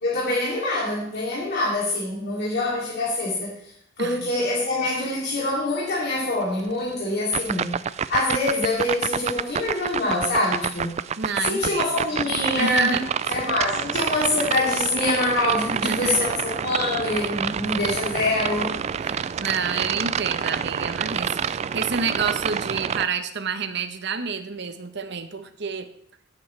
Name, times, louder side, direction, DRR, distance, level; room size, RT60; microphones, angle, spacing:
voice 1, 0.0-3.7 4.0-10.9 11.4-13.0 13.3-18.8, left 2 dB, 55° left, -6 dB, 2.8 m, -25 dB
sound 1, 7.3-23.1, right 7 dB, 35° right, 0.3 m, -28 dB
voice 2, 11.2-11.9 12.6-13.0 15.8-16.2 19.0-25.9, right 5 dB, 60° right, 9 dB, 1.0 m, -29 dB
16.0 x 8.4 x 3.3 m, 0.69 s
head